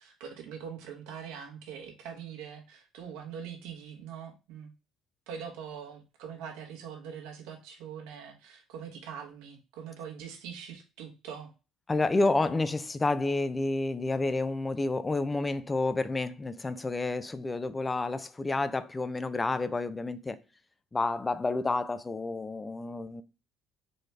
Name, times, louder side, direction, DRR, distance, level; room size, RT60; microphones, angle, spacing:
voice 1, 0.0-4.7 5.3-11.5, right 7 dB, 80° right, 1.2 m, -43 dB
voice 2, 11.9-20.4 20.9-23.2, left 2 dB, 25° left, 0.4 m, -29 dB
4.2 x 3.2 x 3.2 m
hypercardioid pair, 65°, 0 cm